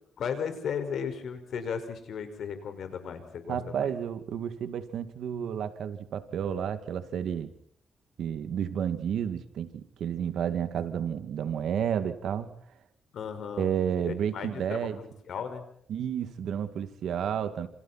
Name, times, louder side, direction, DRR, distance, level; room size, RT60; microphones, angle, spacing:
voice 1, 0.2-3.9 13.1-13.7 14.0-15.6, left 7 dB, 65° left, 9 dB, 5.2 m, -35 dB
voice 2, 3.5-7.5 8.2-12.5 13.6-15.0 15.9-17.7, right 8 dB, 75° right, 10 dB, 2.3 m, -31 dB
28.5 x 28.0 x 4.3 m, 0.64 s
cardioid pair, 130°, 0 cm